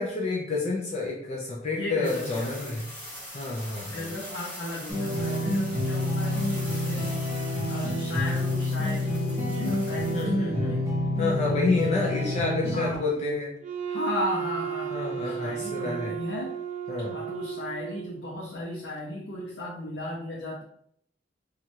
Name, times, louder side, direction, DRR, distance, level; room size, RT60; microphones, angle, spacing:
voice 1, 0.0-2.8 3.3-4.1 10.1-10.8 11.2-13.5 14.9-16.2 16.9-17.2, left 3 dB, 40° left, -2 dB, 0.4 m, -29 dB
voice 2, 1.7-2.8 3.9-7.2 7.7-10.9 11.8-12.4 12.7-13.0 13.9-16.5 17.1-20.6, left 1 dB, 85° left, -5 dB, 0.7 m, -35 dB
sound 1, 2.0-10.2, equal, 10° left, 1.1 m, -42 dB
sound 2, 4.9-12.9, left 1 dB, 15° right, 1.4 m, -28 dB
Wind instrument woodwind instrument, 13.6-18.3, right 8 dB, 45° right, 0.3 m, -34 dB
3.0 x 2.4 x 2.8 m, 0.68 s
head